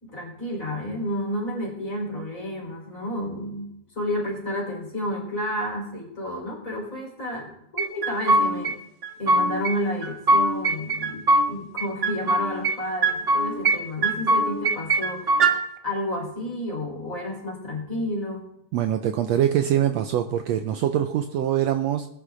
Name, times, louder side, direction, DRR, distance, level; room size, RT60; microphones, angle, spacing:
voice 1, 0.0-3.7 3.9-8.8 9.2-15.4 15.8-18.4, left 1 dB, 25° left, -1 dB, 4.7 m, -31 dB
sound 1, 7.8-8.7 9.0-9.7 10.0-11.5 11.8-12.8 13.0-13.8 14.0-15.5, right 2 dB, 55° right, 0.6 m, -21 dB
voice 2, 18.7-22.1, right 10 dB, 75° right, 6 dB, 1.7 m, -23 dB
21.0 x 9.9 x 3.9 m, 0.82 s
omnidirectional pair, 3.4 m